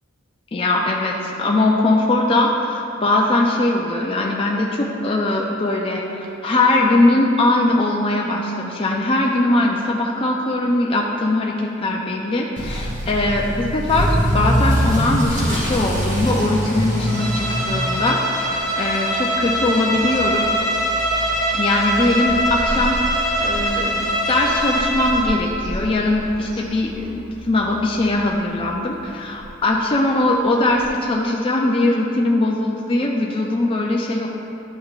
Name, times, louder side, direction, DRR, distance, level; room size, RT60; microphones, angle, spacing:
voice 1, 0.5-20.5 21.5-23.0 23.4-34.3, left 2 dB, 25° left, -1 dB, 0.4 m, -20 dB
Motor vehicle (road) / Accelerating revving vroom, 12.6-27.4 27.7-28.1 28.6-28.7 29.0-29.1 29.4-29.5 30.8-30.9, equal, 40° right, 1.1 m, -25 dB
Bowed string instrument, 17.1-25.4, equal, ahead, 1.0 m, -23 dB
11.0 x 3.7 x 2.3 m, 2.8 s
head